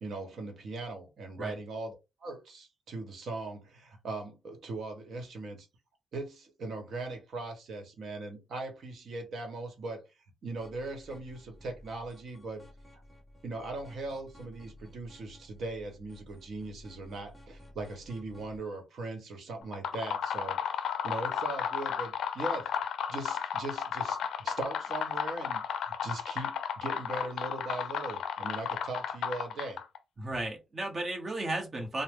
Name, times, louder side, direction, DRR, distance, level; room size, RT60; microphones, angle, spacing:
voice 1, 0.0-5.7 6.1-10.0 10.4-12.6 13.4-20.6 21.0-22.7 23.1-29.8, right 2 dB, 65° right, 1.1 m, -39 dB
sound 1, 10.6-18.6, left 1 dB, 10° left, 0.8 m, -54 dB
sound 2, 19.6-30.0, left 8 dB, 90° left, 0.4 m, -34 dB
voice 2, 30.2-32.0, right 2 dB, 35° right, 1.1 m, -34 dB
3.1 x 2.1 x 3.6 m
cardioid pair, 125°, 0 cm